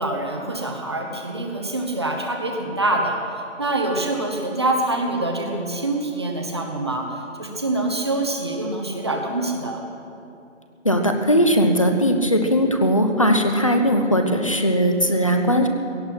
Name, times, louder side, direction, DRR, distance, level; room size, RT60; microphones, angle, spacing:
voice 1, 0.0-3.3 3.6-9.8, right 2 dB, 20° right, 1 dB, 1.1 m, -25 dB
voice 2, 10.8-15.7, equal, 25° left, 5 dB, 0.8 m, -19 dB
17.5 x 13.5 x 5.9 m, 2.7 s
figure-of-eight pair, 175°, 38 cm